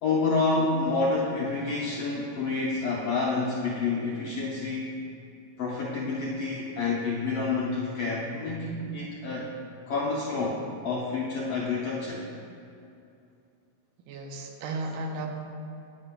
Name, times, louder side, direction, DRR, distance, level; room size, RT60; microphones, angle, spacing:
voice 1, 0.0-5.0 5.6-9.5 9.9-12.2, left 3 dB, 80° left, -5 dB, 1.4 m, -28 dB
voice 2, 14.1-15.3, right 2 dB, 85° right, 2 dB, 2.4 m, -34 dB
10.5 x 10.0 x 2.2 m, 2.6 s
omnidirectional pair, 3.8 m